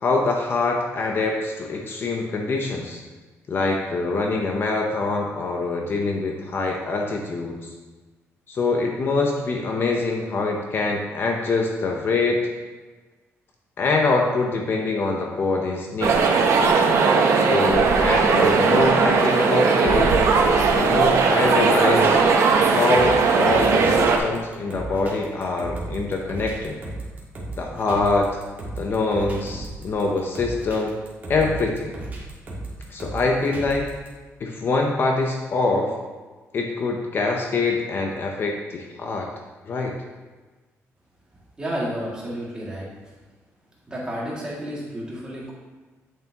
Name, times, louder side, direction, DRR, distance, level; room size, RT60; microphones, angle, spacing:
voice 1, 0.0-3.0 3.5-7.6 8.5-12.4 13.8-16.3 17.4-20.2 20.8-22.2 22.7-26.8 27.6-28.3 28.8-31.0 31.3-31.9 32.9-33.9 34.4-35.9 36.5-39.3 39.6-40.0, left 3 dB, 45° left, 1 dB, 0.8 m, -24 dB
Large crowd very close, 16.0-24.2, right 4 dB, 70° right, 0.9 m, -18 dB
sound 1, 22.9-34.1, right 2 dB, 30° right, 1.7 m, -35 dB
voice 2, 41.6-42.9 43.9-45.5, equal, 15° right, -6 dB, 2.2 m, -31 dB
8.5 x 7.2 x 2.9 m, 1.3 s
cardioid pair, 150°, 5 cm